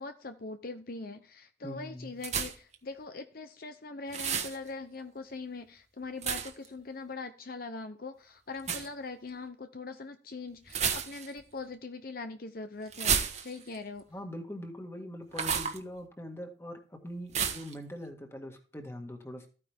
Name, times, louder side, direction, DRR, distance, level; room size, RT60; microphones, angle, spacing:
voice 1, 0.0-14.0, left 3 dB, 50° left, 0.8 m, -42 dB
voice 2, 1.6-2.2 8.7-8.8 14.1-19.5, equal, 15° left, 1.9 m, -42 dB
sound 1, 2.2-2.7 4.1-4.6 6.2-6.7 8.6-8.9 10.7-11.4 12.9-13.8 15.3-15.8 17.3-17.7, right 7 dB, 40° right, 1.4 m, -31 dB
14.0 x 9.8 x 3.6 m
head